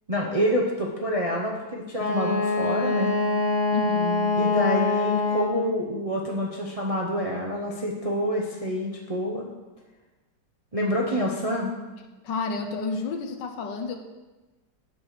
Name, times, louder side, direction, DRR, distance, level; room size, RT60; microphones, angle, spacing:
voice 1, 0.1-3.1 4.4-9.4 10.7-11.7, equal, 30° right, -2 dB, 0.7 m, -27 dB
Wind instrument woodwind instrument, 1.9-5.7, left 3 dB, 25° left, 1.0 m, -24 dB
voice 2, 3.7-4.3 12.2-14.0, left 3 dB, 75° left, 5 dB, 1.5 m, -30 dB
7.6 x 6.8 x 5.9 m, 1.2 s
omnidirectional pair, 2.0 m